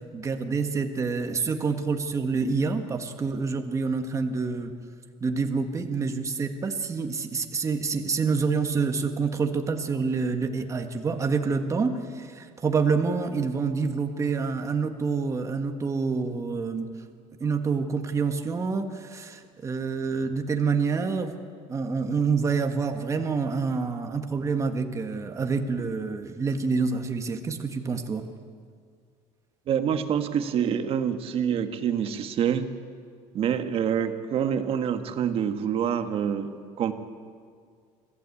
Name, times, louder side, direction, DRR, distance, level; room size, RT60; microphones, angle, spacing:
voice 1, 0.1-4.7 5.2-16.9 17.4-21.3 21.7-28.2, right 4 dB, 25° right, 6 dB, 1.6 m, -27 dB
voice 2, 29.7-32.7 33.3-36.9, right 8 dB, 45° right, 8 dB, 1.5 m, -26 dB
25.5 x 15.5 x 8.5 m, 2.1 s
cardioid pair, 140°, 13 cm